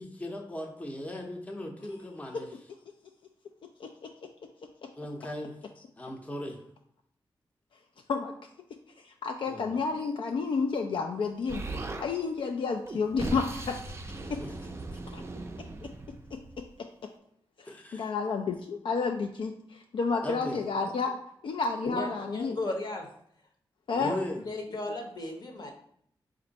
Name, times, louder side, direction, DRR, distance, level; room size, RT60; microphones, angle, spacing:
voice 1, 0.0-2.5 5.0-5.5 6.0-6.6 9.5-9.8 14.4-14.6 17.7-18.1 20.2-20.6 23.9-24.4, left 1 dB, 15° left, 1 dB, 0.6 m, -38 dB
voice 2, 9.0-11.7 12.0-13.7 14.3-14.4 15.1-15.2 16.6-16.7 17.6-21.2 21.4-22.6 23.9-24.2, left 4 dB, 70° left, 2 dB, 0.4 m, -30 dB
Explosion, 11.5-12.1 12.8-16.7, right 2 dB, 30° right, 0.4 m, -38 dB
voice 3, 21.8-23.1 24.0-25.7, left 2 dB, 50° left, 2 dB, 0.8 m, -36 dB
4.3 x 2.6 x 3.9 m, 0.68 s
wide cardioid pair, 100°, 9 cm